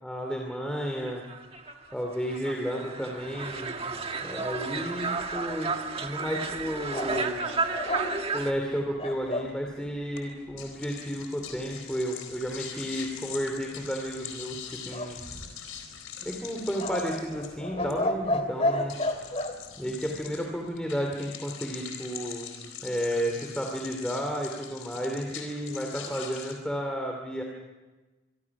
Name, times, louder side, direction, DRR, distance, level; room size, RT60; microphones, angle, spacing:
voice 1, 0.0-1.2 1.9-3.8 4.2-5.7 6.0-7.5 8.3-14.6 14.8-15.2 16.2-19.0 19.8-22.5 22.8-27.4, equal, 5° left, 1 dB, 2.6 m, -32 dB
sound 1, 1.1-8.5, right 4 dB, 30° right, 1.6 m, -32 dB
sound 2, 6.9-9.5 14.9-15.8 16.8-19.6, left 1 dB, 30° left, 2.2 m, -31 dB
sound 3, 10.1-26.5, left 8 dB, 90° left, 4.3 m, -43 dB
26.0 x 24.5 x 6.0 m, 1.2 s
head